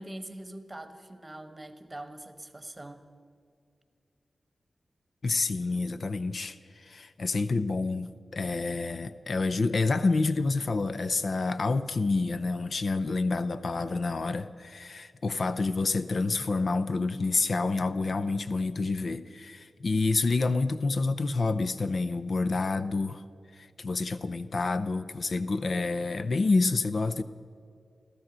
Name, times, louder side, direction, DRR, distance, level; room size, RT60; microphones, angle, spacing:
voice 1, 0.0-3.1, right 1 dB, 20° right, 9 dB, 1.2 m, -43 dB
voice 2, 5.2-23.2 23.5-27.2, left 3 dB, 60° left, 12 dB, 0.6 m, -28 dB
16.0 x 14.0 x 6.2 m, 2.3 s
cardioid pair, 70°, 0 cm